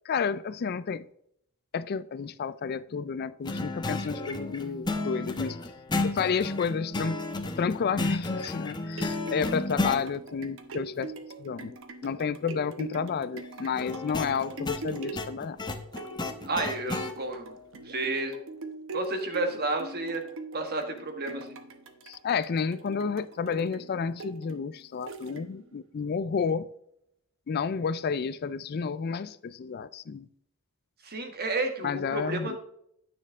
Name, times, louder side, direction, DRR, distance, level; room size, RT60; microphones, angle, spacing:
voice 1, 0.1-1.1 1.7-5.6 6.0-7.2 7.6-11.1 11.4-11.8 12.0-15.6 22.1-26.7 27.5-30.3 31.8-32.6, left 6 dB, 45° left, 0.4 m, -31 dB
sound 1, 3.4-10.0 13.8-17.1, left 2 dB, 20° left, 0.8 m, -32 dB
sound 2, 8.7-25.8 26.3-26.4, right 3 dB, 65° right, 0.9 m, -43 dB
voice 2, 16.5-17.5 17.8-18.3 18.9-20.2 20.5-21.5 31.0-32.6, right 2 dB, 45° right, 1.5 m, -31 dB
9.6 x 6.5 x 3.5 m
head